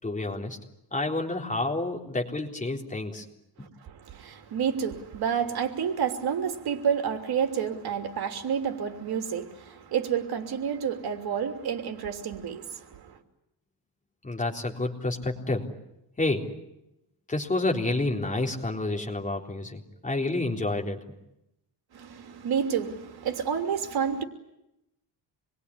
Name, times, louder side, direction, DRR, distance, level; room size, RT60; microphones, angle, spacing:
voice 1, 0.0-0.6 0.9-3.3 14.2-15.7 16.2-16.5 17.3-21.0, left 2 dB, 20° left, 3.8 m, -29 dB
voice 2, 3.6-13.2 21.9-24.2, right 7 dB, 60° right, 3.1 m, -30 dB
27.5 x 22.0 x 9.8 m
cardioid pair, 145°, 42 cm